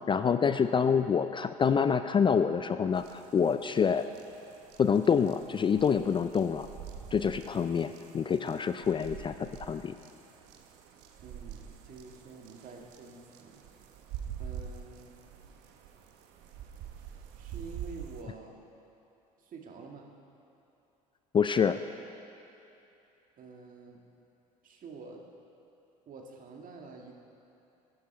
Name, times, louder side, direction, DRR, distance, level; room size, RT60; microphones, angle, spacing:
voice 1, 0.1-4.1 4.8-6.7 7.1-9.9 21.3-21.8, left 6 dB, 25° left, 10 dB, 0.4 m, -27 dB
sound 1, 2.9-18.2, right 8 dB, 65° right, 1.1 m, -46 dB
voice 2, 11.2-13.6 14.4-15.1 17.4-18.6 19.4-20.1 23.4-24.0 24.6-25.2 26.1-27.2, right 4 dB, 45° right, 1 dB, 1.9 m, -48 dB
15.5 x 10.5 x 4.4 m, 2.9 s
hypercardioid pair, 65°, 19 cm